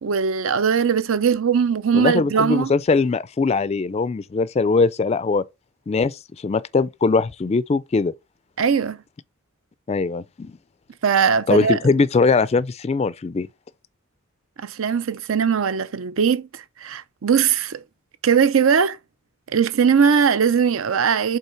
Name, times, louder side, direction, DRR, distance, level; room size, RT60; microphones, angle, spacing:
voice 1, 0.0-2.7 8.6-9.0 11.0-11.8 14.6-17.8 18.2-19.0 19.5-21.4, right 6 dB, 70° right, 0.5 m, -20 dB
voice 2, 1.9-5.4 5.9-8.1 9.9-10.6 11.5-13.5, left 4 dB, 30° left, 0.3 m, -21 dB
5.5 x 3.8 x 5.7 m
head